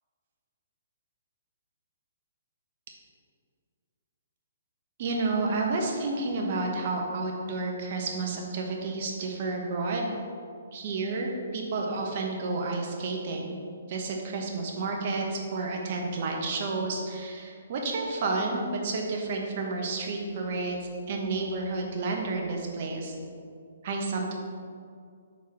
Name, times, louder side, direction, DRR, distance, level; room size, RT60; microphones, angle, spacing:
voice 1, 5.0-10.1 10.7-13.6 13.9-23.1 23.8-24.3, right 3 dB, 45° right, 0 dB, 1.1 m, -30 dB
4.6 x 4.6 x 5.8 m, 2.2 s
hypercardioid pair, 155°, 0 cm